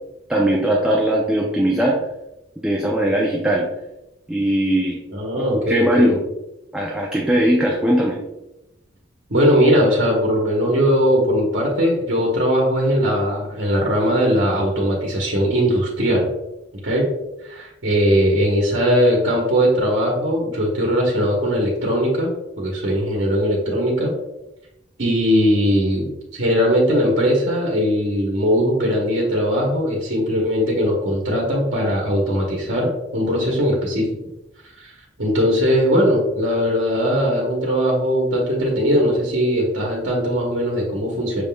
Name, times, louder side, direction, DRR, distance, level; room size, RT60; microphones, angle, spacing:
voice 1, 0.3-2.0 2.6-3.7 4.3-5.0 5.4-6.2 6.7-8.2, right 1 dB, 5° right, -2 dB, 0.4 m, -19 dB
voice 2, 5.1-6.2 9.3-16.3 16.8-17.1 17.4-24.1 25.0-34.0 34.8-34.9 35.2-41.4, equal, 70° right, -2 dB, 1.0 m, -19 dB
6.2 x 3.6 x 2.3 m, 0.92 s
head